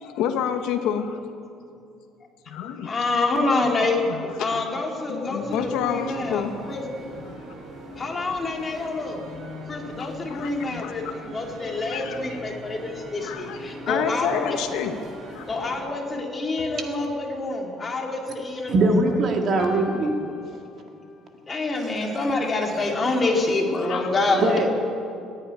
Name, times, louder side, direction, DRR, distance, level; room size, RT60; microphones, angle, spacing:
voice 1, 0.0-1.2 2.5-3.0 3.8-6.7 7.2-7.4 9.9-11.1 11.9-12.4 13.2-13.6 13.9-15.0 15.3-15.5 23.9-24.1, left 8 dB, 80° left, 7 dB, 1.1 m, -29 dB
voice 2, 2.9-4.0 4.4-6.8 8.0-9.2 9.7-11.0 11.3-14.6 14.8-14.9 15.5-18.8 21.5-24.6, left 2 dB, 20° left, 1 dB, 2.1 m, -26 dB
sound 1, 5.4-15.8, equal, 65° right, 4.4 m, -41 dB
sound 2, 16.6-19.0 19.6-21.1, left 4 dB, 45° left, 1.5 m, -42 dB
voice 3, 18.7-20.2 24.3-24.7, right 2 dB, 40° right, 3 dB, 1.8 m, -21 dB
15.0 x 9.7 x 9.3 m, 2.5 s
cardioid pair, 160°, 0 cm